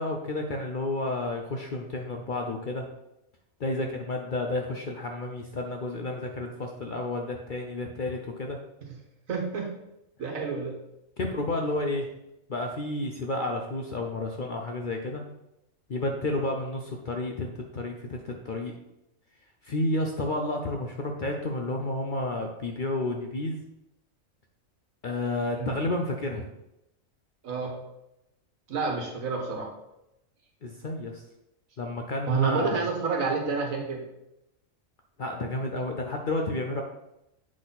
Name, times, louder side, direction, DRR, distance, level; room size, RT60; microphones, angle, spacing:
voice 1, 0.0-2.9 3.6-8.6 11.2-12.1 12.5-15.2 15.9-18.8 19.6-23.6 25.0-26.5 30.6-31.2 31.8-32.9 35.2-36.8, left 2 dB, 50° left, 2 dB, 0.6 m, -31 dB
voice 2, 9.3-9.7 10.2-10.8 25.5-25.8 27.4-27.8 28.7-29.7 32.3-34.0, right 4 dB, 75° right, 1 dB, 1.7 m, -29 dB
7.5 x 4.1 x 4.0 m, 0.87 s
omnidirectional pair, 1.4 m